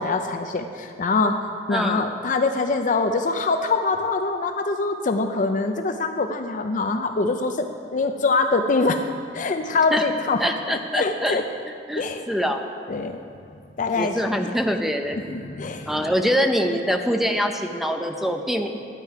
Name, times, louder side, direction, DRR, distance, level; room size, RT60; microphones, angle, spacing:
voice 1, 0.0-1.3 1.7-7.6 7.9-9.0 9.3-10.4 10.7-11.4 12.0-12.2 12.9-13.2 13.8-14.2 14.5-14.6 15.1-16.0, left 3 dB, 45° left, 6 dB, 0.5 m, -24 dB
voice 2, 1.7-2.1 9.9-10.0 10.4-11.4 11.9-12.6 13.9-15.2 15.9-18.7, equal, ahead, 4 dB, 0.6 m, -24 dB
12.5 x 9.1 x 4.8 m, 2.4 s
head